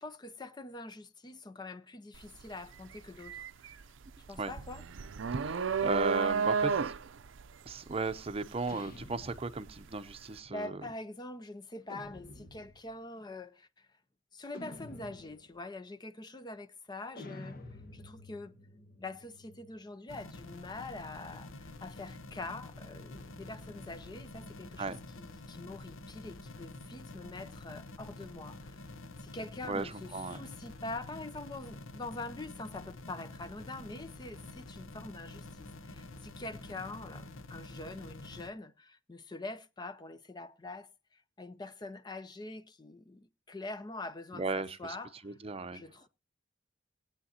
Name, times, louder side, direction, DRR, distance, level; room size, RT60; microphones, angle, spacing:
voice 1, 0.0-3.8 4.3-4.9 10.5-13.9 14.3-17.6 17.9-18.6 19.0-28.8 29.2-45.4 45.7-46.1, left 2 dB, 20° left, 0.5 m, -44 dB
sound 1, 2.1-2.4 2.8-9.8, right 5 dB, 70° right, 0.5 m, -32 dB
voice 2, 5.8-6.9 7.7-10.7 24.8-25.0 29.7-30.4 44.3-45.0 45.2-45.8, right 3 dB, 30° right, 0.7 m, -36 dB
sound 2, 8.7-10.0 11.9-13.0 14.5-15.6 17.2-19.8, left 2 dB, 45° left, 1.2 m, -50 dB
sound 3, 20.1-38.5, left 2 dB, 90° left, 1.0 m, -48 dB
20.0 x 8.8 x 2.8 m
head